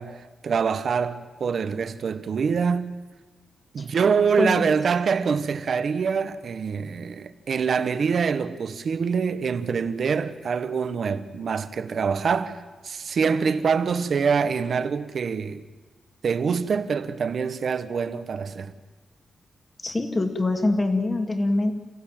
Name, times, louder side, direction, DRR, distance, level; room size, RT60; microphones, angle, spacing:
voice 1, 0.0-2.9 3.7-12.6 12.8-15.6 16.2-18.7, right 6 dB, 55° right, 1.4 m, -25 dB
voice 2, 4.4-4.7 19.8-21.7, left 2 dB, 20° left, 2.4 m, -24 dB
29.0 x 16.0 x 9.1 m
wide cardioid pair, 135°, 0 cm